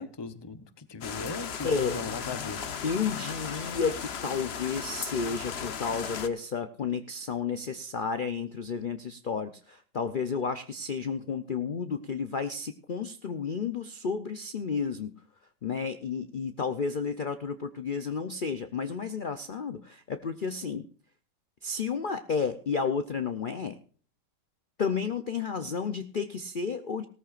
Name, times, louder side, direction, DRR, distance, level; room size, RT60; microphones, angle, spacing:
voice 1, 0.0-2.6, left 4 dB, 25° left, 11 dB, 0.6 m, -38 dB
sound 1, 1.0-6.3, left 7 dB, 45° left, 0.9 m, -36 dB
voice 2, 1.6-2.0 2.8-15.2 15.6-20.8 21.6-23.8 24.8-27.0, left 5 dB, 90° left, 9 dB, 0.4 m, -32 dB
18.0 x 14.0 x 2.5 m, 0.43 s
omnidirectional pair, 1.9 m